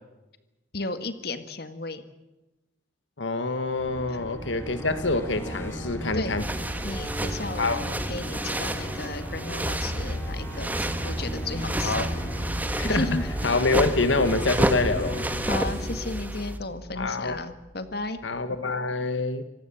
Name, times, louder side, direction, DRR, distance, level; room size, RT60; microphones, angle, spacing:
voice 1, 0.7-2.0 4.1-4.2 6.1-6.3 6.8-12.0 12.8-13.3 15.5-18.2, left 2 dB, 55° left, 10 dB, 1.9 m, -34 dB
voice 2, 3.2-6.4 7.6-7.9 11.8-12.1 12.8-13.2 13.4-15.3 17.0-17.4 18.2-19.4, left 3 dB, 80° left, 11 dB, 1.5 m, -26 dB
sound 1, 3.7-17.7, equal, 15° left, 5.4 m, -34 dB
sound 2, 6.4-16.6, right 1 dB, 10° right, 1.5 m, -31 dB
sound 3, 9.6-15.9, equal, 90° right, 5.8 m, -37 dB
26.0 x 19.0 x 7.1 m, 1.0 s
head